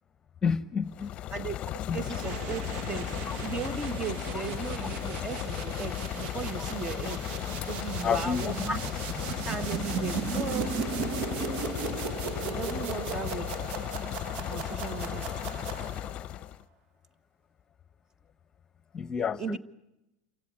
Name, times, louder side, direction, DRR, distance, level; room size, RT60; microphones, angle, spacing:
voice 1, 0.4-1.1 1.9-2.0 3.2-3.4 6.6-6.7 8.0-8.7 18.9-19.6, left 6 dB, 25° left, 15 dB, 1.1 m, -30 dB
sound 1, 0.8-16.6, left 12 dB, 40° left, 0.8 m, -35 dB
voice 2, 1.3-3.1 3.4-7.2 7.7-8.8 9.4-10.8 12.4-13.5 14.5-15.3 19.4-19.6, right 5 dB, 25° right, 13 dB, 1.7 m, -36 dB
sound 2, 1.9-16.2, right 7 dB, 55° right, 1.2 m, -37 dB
28.0 x 16.0 x 9.7 m, 0.91 s
supercardioid pair, 120°, 3 cm